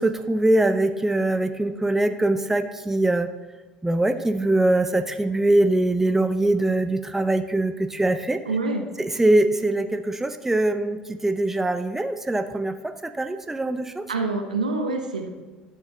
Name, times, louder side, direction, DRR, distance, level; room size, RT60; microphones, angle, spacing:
voice 1, 0.0-3.3 3.8-8.4 9.0-12.7 13.0-14.0, right 2 dB, 10° right, 9 dB, 0.6 m, -22 dB
voice 2, 8.4-8.9 14.1-15.3, right 3 dB, 85° right, 4 dB, 0.9 m, -26 dB
12.5 x 7.3 x 3.6 m, 1.4 s
figure-of-eight pair, 60°, 4 cm